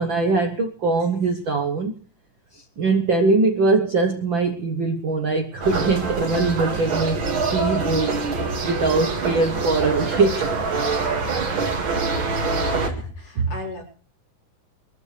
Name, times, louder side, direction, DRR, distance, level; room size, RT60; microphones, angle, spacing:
voice 1, 0.0-1.9 2.5-7.2 7.5-8.2 8.6-10.5, right 3 dB, 60° right, 5 dB, 1.2 m, -22 dB
sound 1, 5.6-12.9, right 3 dB, 45° right, 2.5 m, -25 dB
voice 2, 12.7-13.8, left 2 dB, 80° left, -2 dB, 5.9 m, -34 dB
23.5 x 13.5 x 3.3 m, 0.43 s
omnidirectional pair, 3.6 m